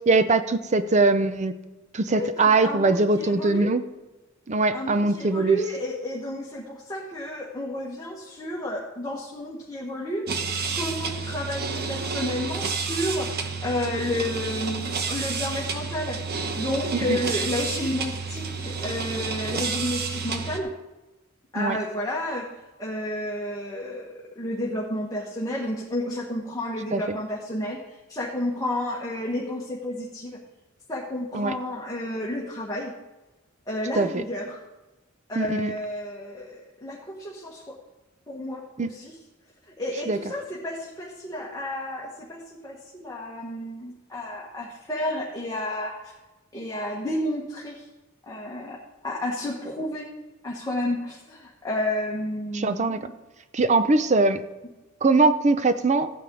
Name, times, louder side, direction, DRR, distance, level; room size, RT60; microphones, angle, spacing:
voice 1, 0.1-1.6 1.9-3.8 4.5-5.6 17.0-17.2 21.6-21.8 26.9-27.2 31.3-31.5 33.9-34.2 35.4-35.7 38.8-38.9 40.1-40.2 52.5-53.0 53.5-54.4 55.0-56.1, right 3 dB, 35° right, 11 dB, 0.6 m, -21 dB
voice 2, 2.1-3.7 4.7-10.3 10.7-20.7 21.5-22.5 22.8-27.8 28.1-30.4 30.9-32.9 33.7-34.6 35.3-37.7 38.3-39.2 39.8-46.1 46.5-47.9 48.3-50.1 50.4-53.1, left 1 dB, 20° left, -4 dB, 1.4 m, -31 dB
sound 1, 10.3-20.6, right 5 dB, 50° right, 1.0 m, -30 dB
14.5 x 9.0 x 3.9 m, 1.1 s
head